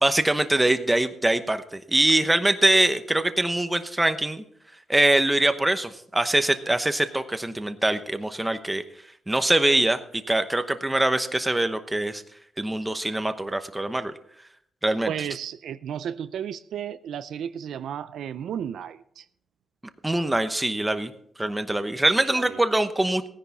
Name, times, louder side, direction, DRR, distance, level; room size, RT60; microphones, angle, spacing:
voice 1, 0.0-4.4 4.9-8.8 9.3-12.2 12.6-14.1 14.8-15.1 20.0-21.1 21.4-23.3, right 1 dB, 10° right, 9 dB, 0.9 m, -23 dB
voice 2, 15.1-19.3 22.3-22.6, right 9 dB, 75° right, 14 dB, 0.5 m, -33 dB
16.5 x 10.0 x 4.1 m, 0.70 s
cardioid pair, 115°, 0 cm